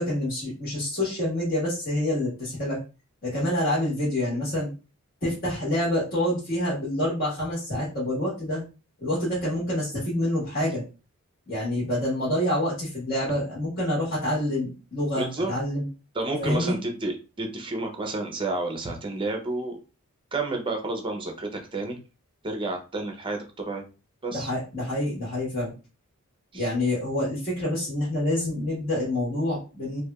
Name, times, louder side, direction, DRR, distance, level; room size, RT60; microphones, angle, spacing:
voice 1, 0.0-2.8 3.2-4.7 5.2-8.6 9.0-10.8 11.5-15.8 16.4-16.8 24.3-25.7 26.5-30.0, left 1 dB, 40° left, -8 dB, 1.4 m, -27 dB
voice 2, 15.2-15.5 16.1-19.8 20.3-22.0 22.4-23.8 24.2-24.5 26.5-26.7, right 2 dB, 25° right, 3 dB, 0.6 m, -30 dB
3.2 x 2.7 x 2.3 m, 0.32 s
head